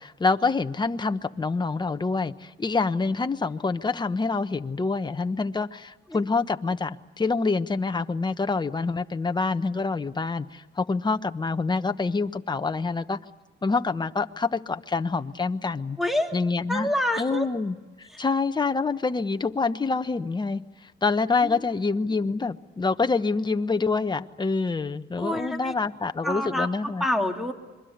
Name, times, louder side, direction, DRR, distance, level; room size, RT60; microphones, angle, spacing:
voice 1, 0.0-13.2 13.6-16.0 16.3-16.9 17.2-20.6 21.0-27.0, left 4 dB, 20° left, 9 dB, 1.2 m, -26 dB
voice 2, 16.0-16.4 16.7-17.5 18.1-18.2 21.4-21.6 25.2-25.7 26.2-26.7 27.0-27.5, left 1 dB, ahead, 4 dB, 2.9 m, -27 dB
26.5 x 23.0 x 8.1 m, 1.2 s
cardioid pair, 90°, 20 cm